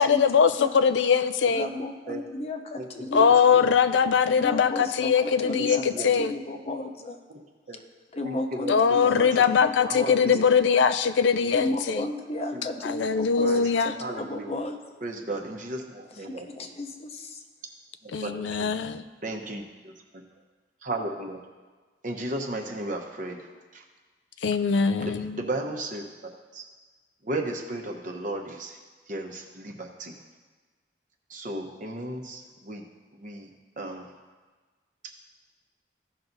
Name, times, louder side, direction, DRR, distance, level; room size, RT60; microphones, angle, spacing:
voice 1, 0.0-1.7 3.1-5.8 6.0-6.3 8.7-12.0 12.8-13.9 18.1-19.0 24.4-25.4, left 6 dB, 85° left, 11 dB, 0.4 m, -21 dB
voice 2, 1.5-3.5 4.4-7.2 7.7-7.8 8.1-10.2 11.5-15.0 16.1-17.4, left 2 dB, 35° left, 5 dB, 0.7 m, -34 dB
voice 3, 8.2-9.5 9.8-10.5 11.4-11.6 11.9-12.0 12.5-12.6 13.4-13.6 14.0-14.5 15.0-16.4 18.0-18.7 19.2-19.9 20.8-21.4 22.0-23.5 23.7-23.8 25.0-26.7 27.2-28.8 29.1-30.1 31.3-32.8 33.1-33.5 33.8-34.1, right 1 dB, 45° right, 3 dB, 0.9 m, -35 dB
15.0 x 5.8 x 2.7 m, 1.4 s
head